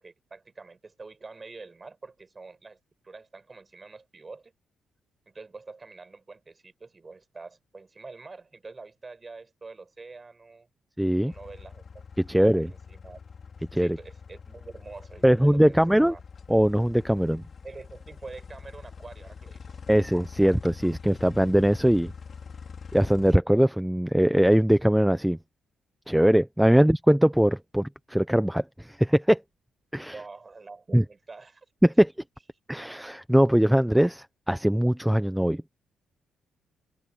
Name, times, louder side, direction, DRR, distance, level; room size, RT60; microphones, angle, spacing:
voice 1, 0.0-4.5 5.3-10.7 11.2-12.0 12.4-13.2 13.8-16.2 17.6-19.8 30.1-31.7, right 3 dB, 25° right, 7.3 m, -46 dB
voice 2, 11.0-11.3 12.3-12.7 13.7-14.0 15.2-16.1 16.5-17.4 19.9-22.1 22.9-25.4 26.1-29.4 29.9-30.2 30.9-31.0 31.8-32.1 32.7-35.6, equal, 5° right, 0.8 m, -21 dB
sound 1, 11.3-23.4, left 5 dB, 45° left, 3.7 m, -45 dB
open air
cardioid pair, 90°, 0 cm